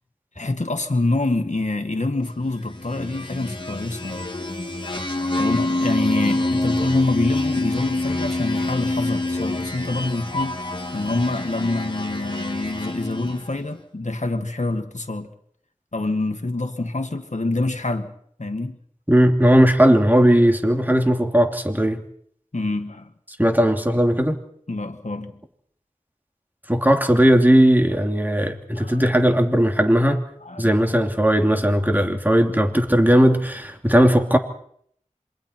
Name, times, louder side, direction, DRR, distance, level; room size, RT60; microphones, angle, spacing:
voice 1, 0.4-4.3 5.4-10.6 10.9-15.3 15.9-18.1 18.4-18.8 22.5-23.1 24.7-25.4 28.8-29.0 30.4-30.7, left 2 dB, 60° left, 1.9 m, -26 dB
sound 1, 2.7-13.6, left 2 dB, 35° left, 2.6 m, -26 dB
voice 2, 19.1-22.0 23.4-24.4 26.7-30.2 30.6-34.4, equal, 15° right, 2.9 m, -17 dB
27.5 x 24.0 x 4.5 m
wide cardioid pair, 40°, 14 cm